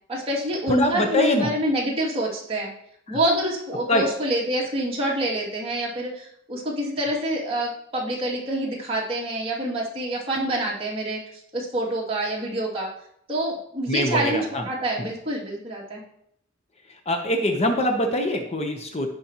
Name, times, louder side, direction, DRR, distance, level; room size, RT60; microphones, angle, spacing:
voice 1, 0.1-2.7 3.1-11.2 11.5-12.9 13.3-16.0, right 1 dB, 30° right, -5 dB, 2.5 m, -27 dB
voice 2, 0.7-1.5 3.1-3.2 3.9-4.0 13.9-14.7 15.0-15.1 17.1-19.1, left 1 dB, 35° left, 3 dB, 0.9 m, -23 dB
16.0 x 5.3 x 3.0 m, 0.71 s
head